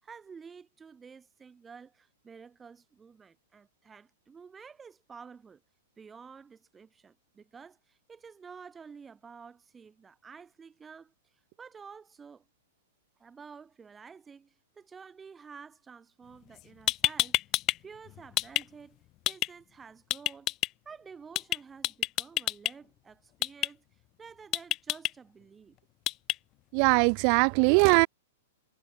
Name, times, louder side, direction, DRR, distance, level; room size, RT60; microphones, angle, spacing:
voice 1, 0.0-5.6 6.0-11.1 11.6-12.4 13.2-17.4 17.8-20.5 20.8-23.8 24.2-25.8, right 5 dB, 15° right, 7.8 m, -50 dB
sound 1, 16.6-16.7 16.9-17.8 18.1-18.6 19.3-19.5 20.1-20.7 21.3-21.6 21.8-22.7 23.4-23.7 24.5-25.1 26.1-26.3, left 16 dB, 35° left, 0.7 m, -27 dB
voice 2, 26.7-28.1, right 40 dB or more, 45° right, 1.2 m, -21 dB
hypercardioid pair, 110°, 0 cm